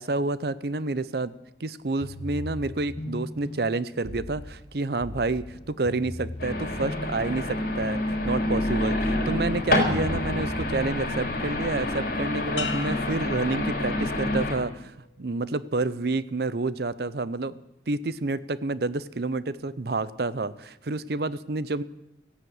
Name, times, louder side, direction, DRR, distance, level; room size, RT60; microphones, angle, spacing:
voice 1, 0.0-1.3 1.6-21.8, right 3 dB, 55° right, 17 dB, 0.6 m, -29 dB
sound 1, 2.0-11.8, left 1 dB, 35° left, 1.1 m, -39 dB
sound 2, 6.4-14.6, left 1 dB, 55° left, 4.4 m, -27 dB
sound 3, 12.6-14.3 14.8-15.3, left 6 dB, 75° left, 1.2 m, -39 dB
15.0 x 11.0 x 8.0 m, 0.89 s
head